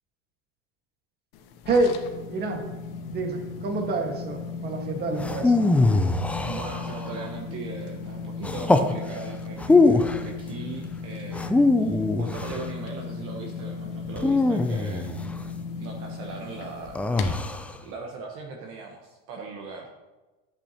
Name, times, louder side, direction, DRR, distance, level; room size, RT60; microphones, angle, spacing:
sound 1, 1.3-17.6, left 5 dB, 75° left, 1.2 m, -36 dB
voice 1, 1.7-2.0 2.3-2.7 3.1-5.6, right 2 dB, 35° right, 3 dB, 1.5 m, -27 dB
sound 2, 5.2-7.2 8.4-8.9 9.6-10.3 11.3-12.7 14.2-15.4 17.0-17.7, left 3 dB, 5° left, 0.3 m, -22 dB
voice 2, 6.4-15.1 15.8-17.1 17.8-19.9, right 4 dB, 50° right, 1 dB, 1.1 m, -39 dB
10.0 x 8.3 x 2.9 m, 1.2 s
supercardioid pair, 135°, 30 cm